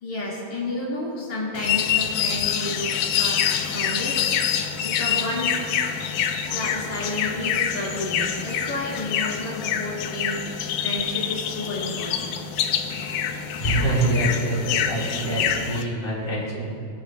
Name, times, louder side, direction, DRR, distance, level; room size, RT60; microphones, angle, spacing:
voice 1, 0.0-5.7 6.4-12.4, left 1 dB, 65° left, -6 dB, 3.4 m, -31 dB
sound 1, 1.5-15.8, left 8 dB, 80° left, 2.2 m, -26 dB
voice 2, 13.6-16.6, right 2 dB, 15° left, -6 dB, 3.7 m, -25 dB
21.5 x 13.0 x 2.3 m, 2.3 s
omnidirectional pair, 3.5 m